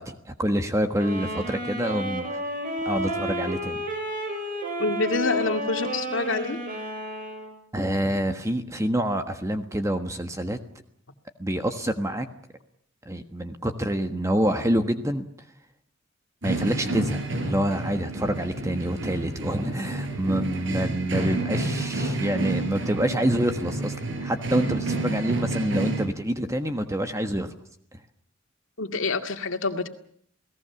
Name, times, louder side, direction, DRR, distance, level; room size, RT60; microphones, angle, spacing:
voice 1, 0.0-2.3 2.8-3.8 7.7-10.6 11.4-12.3 13.0-15.2 16.4-23.9 24.2-27.5, right 1 dB, 15° right, 7 dB, 1.4 m, -27 dB
sound 1, 1.0-7.5, equal, 45° right, 7.4 m, -31 dB
voice 2, 4.8-6.6 28.8-29.9, left 3 dB, 75° left, 6 dB, 2.3 m, -27 dB
sound 2, 16.4-26.1, right 2 dB, 65° right, 5.8 m, -30 dB
29.0 x 18.0 x 7.1 m, 0.66 s
head